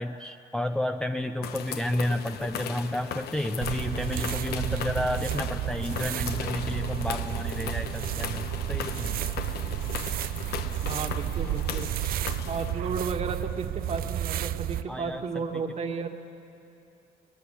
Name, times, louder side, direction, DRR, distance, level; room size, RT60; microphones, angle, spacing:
voice 1, 0.0-9.2 14.9-15.6, left 1 dB, 5° left, 5 dB, 0.7 m, -31 dB
sound 1, 1.4-12.7, left 8 dB, 70° left, 1.2 m, -38 dB
sound 2, 3.6-14.8, right 12 dB, 60° right, 0.6 m, -32 dB
voice 2, 10.8-11.9 12.5-16.1, right 5 dB, 40° right, 4 dB, 1.9 m, -33 dB
20.5 x 20.0 x 10.0 m, 2.7 s
cardioid pair, 110°, 17 cm